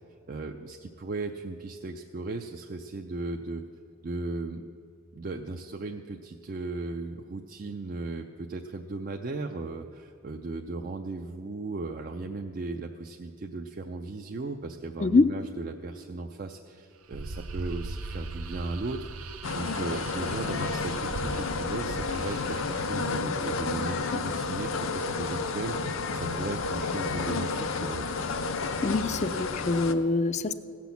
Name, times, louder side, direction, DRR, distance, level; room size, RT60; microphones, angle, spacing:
voice 1, 0.3-3.6 4.0-4.6 5.1-28.1, right 3 dB, 40° right, 4 dB, 0.4 m, -37 dB
sound 1, 17.1-23.2, right 2 dB, 85° right, 0.7 m, -39 dB
sound 2, 19.4-29.9, left 4 dB, 65° left, 0.6 m, -31 dB
voice 2, 28.8-30.5, left 3 dB, 30° left, 13 dB, 0.3 m, -24 dB
16.0 x 6.0 x 7.0 m, 2.6 s
head